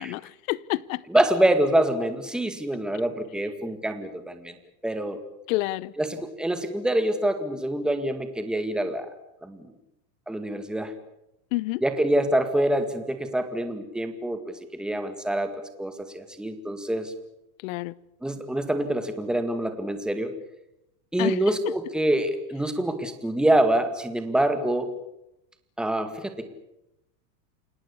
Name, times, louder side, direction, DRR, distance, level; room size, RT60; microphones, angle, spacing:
voice 1, 0.0-1.0 5.5-5.9 11.5-11.8 17.6-17.9 21.2-21.4, left 19 dB, 55° left, 0.8 m, -28 dB
voice 2, 1.1-4.5 4.8-5.2 6.0-9.1 9.4-9.7 10.3-10.9 11.8-14.4 14.7-17.1 18.2-20.3 21.1-24.9 25.8-26.5, right 1 dB, ahead, 1.9 m, -25 dB
28.5 x 18.5 x 8.4 m
supercardioid pair, 140°, 49 cm